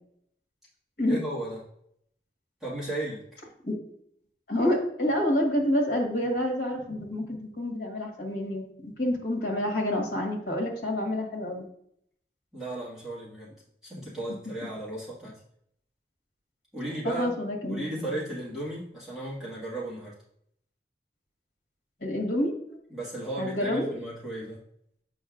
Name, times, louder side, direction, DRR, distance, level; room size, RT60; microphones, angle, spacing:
voice 1, 1.1-1.6 2.6-3.2 12.5-13.5 13.8-15.4 16.7-17.3 17.7-20.1 22.9-24.6, right 1 dB, ahead, -10 dB, 2.0 m, -35 dB
voice 2, 4.5-11.7 17.0-18.1 22.0-22.5 23.4-23.9, left 1 dB, 60° left, -1 dB, 1.8 m, -28 dB
7.8 x 5.3 x 2.6 m, 0.68 s
head